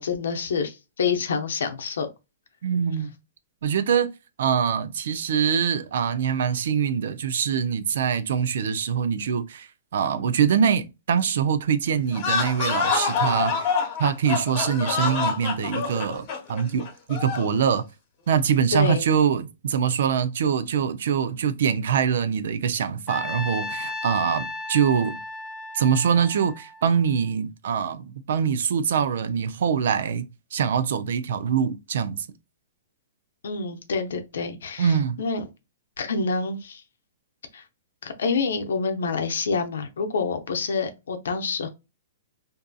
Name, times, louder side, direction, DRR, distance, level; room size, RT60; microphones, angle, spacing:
voice 1, 0.0-2.1 18.7-19.0 33.4-35.4 36.0-36.8 37.5-37.6 38.0-41.7, left 4 dB, 80° left, 0.6 m, -27 dB
voice 2, 2.6-3.1 3.6-4.1 4.4-13.7 14.0-17.8 18.3-25.2 25.7-32.3 34.8-35.2, right 7 dB, 70° right, 0.4 m, -24 dB
sound 1, 12.1-17.6, left 5 dB, 40° left, 1.1 m, -26 dB
Trumpet, 23.1-27.3, left 2 dB, 10° left, 0.5 m, -35 dB
2.6 x 2.5 x 2.2 m
hypercardioid pair, 140°, 0 cm